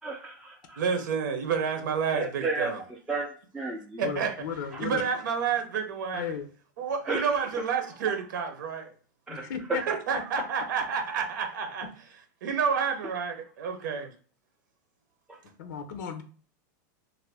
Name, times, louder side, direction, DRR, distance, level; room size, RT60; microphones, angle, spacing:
voice 1, 0.0-0.8 2.1-2.7 3.1-3.3 3.5-4.0 7.1-7.3 7.5-7.6 9.3-9.4, right 3 dB, 5° right, 0.4 m, -32 dB
voice 2, 0.8-2.8 4.0-6.4 6.8-8.9 9.7-11.9 12.4-14.1, right 6 dB, 80° right, 0.7 m, -29 dB
voice 3, 4.0-5.0 6.1-6.5 9.3-9.8 10.3-10.4 15.6-16.2, left 7 dB, 75° left, 0.6 m, -35 dB
2.6 x 2.5 x 3.4 m
supercardioid pair, 155°, 10 cm